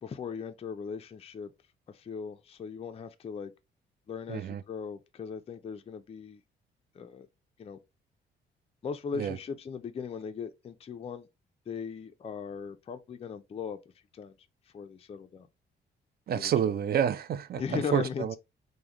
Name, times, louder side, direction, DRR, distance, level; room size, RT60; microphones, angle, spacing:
voice 1, 0.0-1.5 1.9-3.5 4.1-6.4 6.9-7.3 7.6-7.8 8.8-11.3 11.7-13.8 14.1-14.3 14.7-15.5 16.3-16.5 17.6-18.4, left 6 dB, 30° left, 0.4 m, -38 dB
voice 2, 4.3-4.6 9.1-9.4 16.3-18.4, right 9 dB, 50° right, 0.4 m, -29 dB
3.5 x 2.1 x 2.8 m
supercardioid pair, 60°, 20 cm